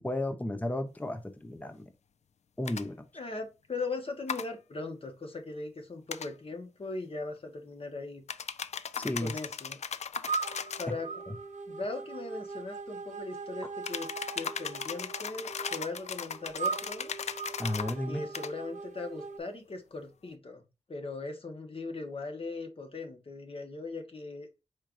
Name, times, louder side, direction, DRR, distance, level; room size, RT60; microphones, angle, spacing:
voice 1, 0.0-1.9 2.6-3.1 9.0-9.3 11.3-11.4 17.6-18.3, left 1 dB, 10° left, 0.6 m, -33 dB
sound 1, 2.7-2.8 4.3-4.5 6.1-6.3 8.3-10.9 13.8-18.0 18.3-18.5, left 7 dB, 65° left, 0.4 m, -37 dB
voice 2, 3.1-8.2 9.2-9.8 10.8-11.1 11.7-14.1 14.3-17.1 18.1-24.5, left 3 dB, 50° left, 1.3 m, -39 dB
sound 2, 10.2-19.4, right 4 dB, 85° right, 0.6 m, -39 dB
4.7 x 4.4 x 2.5 m
wide cardioid pair, 90°, 12 cm